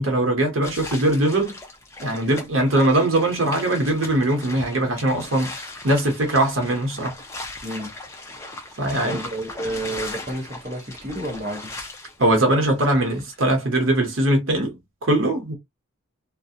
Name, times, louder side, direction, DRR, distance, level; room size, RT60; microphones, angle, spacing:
voice 1, 0.0-1.5 2.0-7.1 8.8-9.2 12.2-15.5, right 1 dB, 75° right, 0.8 m, -21 dB
sound 1, 0.6-13.5, left 2 dB, 15° left, 0.5 m, -38 dB
voice 2, 7.6-7.9 9.0-11.7, right 1 dB, 35° right, 1.0 m, -30 dB
2.4 x 2.0 x 2.7 m
head